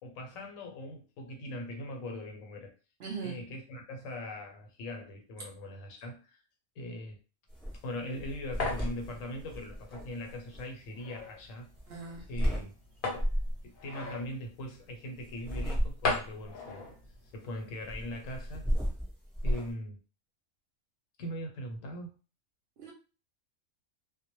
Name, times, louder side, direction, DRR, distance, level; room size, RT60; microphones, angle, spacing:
voice 1, 0.0-2.7 3.2-6.4 6.8-7.2 7.8-11.7 12.3-12.7 13.6-16.9 17.3-18.7 19.4-20.0 21.2-22.1, left 1 dB, 85° left, 3 dB, 1.0 m, -41 dB
voice 2, 3.0-3.5 11.9-12.6 22.8-22.9, right 5 dB, 60° right, 0 dB, 0.7 m, -41 dB
sound 1, 7.5-7.8 8.1-10.6 11.8-12.7 13.1-13.6 15.2-16.3 17.9-19.7, equal, ahead, 0.7 m, -33 dB
sound 2, 7.7-18.1, left 3 dB, 50° left, 0.7 m, -40 dB
2.1 x 2.1 x 2.9 m, 0.34 s
omnidirectional pair, 1.3 m